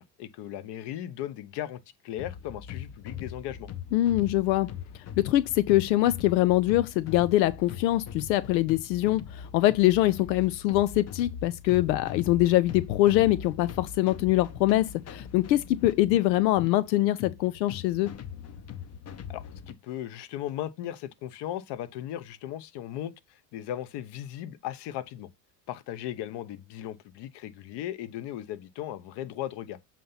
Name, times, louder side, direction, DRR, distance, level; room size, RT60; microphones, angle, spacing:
voice 1, 0.0-3.7 19.3-25.3 25.7-29.8, left 12 dB, 55° left, 0.9 m, -37 dB
sound 1, 2.2-19.7, left 8 dB, 30° left, 0.8 m, -41 dB
voice 2, 3.9-4.7 5.2-18.1, left 15 dB, 90° left, 0.6 m, -23 dB
7.3 x 2.9 x 5.5 m
supercardioid pair, 90°, 50 cm